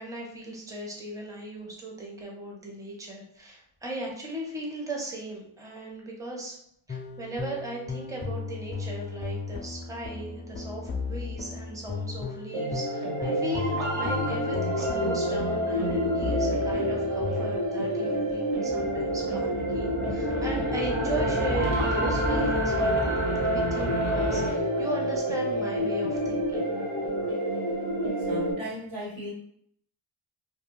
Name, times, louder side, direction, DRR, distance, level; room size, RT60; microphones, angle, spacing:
voice 1, 0.0-6.6 6.9-22.9 23.4-26.7, right 1 dB, 5° right, -2 dB, 0.7 m, -37 dB
sound 1, 6.9-17.5, left 4 dB, 25° left, 0.3 m, -36 dB
sound 2, 12.5-28.5, equal, 85° right, 0.8 m, -28 dB
sound 3, 18.6-24.5, equal, 35° right, 1.1 m, -30 dB
voice 2, 28.2-29.3, equal, 70° right, -6 dB, 1.3 m, -37 dB
2.4 x 2.3 x 3.0 m, 0.68 s
wide cardioid pair, 55°, 48 cm